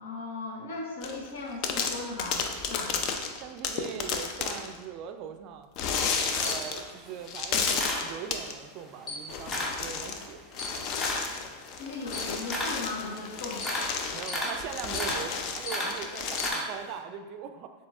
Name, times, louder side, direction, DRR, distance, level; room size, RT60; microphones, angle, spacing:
voice 1, 0.0-2.4 2.7-2.9 11.8-13.6, left 3 dB, 80° left, 0 dB, 0.9 m, -37 dB
sound 1, 1.0-1.3 1.6-4.8 5.8-6.9 7.3-8.5 9.3-10.3 10.5-16.5, left 5 dB, 50° left, 0.5 m, -32 dB
voice 2, 3.4-5.7 6.3-10.5 14.1-17.7, right 8 dB, 50° right, 8 dB, 0.4 m, -41 dB
Camera, 6.4-8.6 8.9-9.9 10.2-17.0, left 1 dB, 20° left, 0.9 m, -34 dB
7.0 x 2.9 x 2.4 m, 1.3 s
hypercardioid pair, 115°, 0 cm